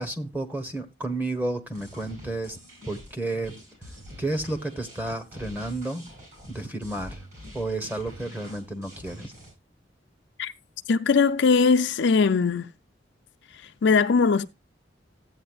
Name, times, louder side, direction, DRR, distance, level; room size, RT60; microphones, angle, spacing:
voice 1, 0.0-2.6 2.9-3.6 4.2-6.1 6.5-7.2 7.5-9.3, right 2 dB, 10° right, 1.1 m, -31 dB
sound 1, 1.7-9.5, equal, 40° right, 8.0 m, -45 dB
voice 2, 10.9-12.7 13.8-14.5, left 5 dB, 65° left, 0.5 m, -20 dB
14.5 x 8.7 x 2.4 m
head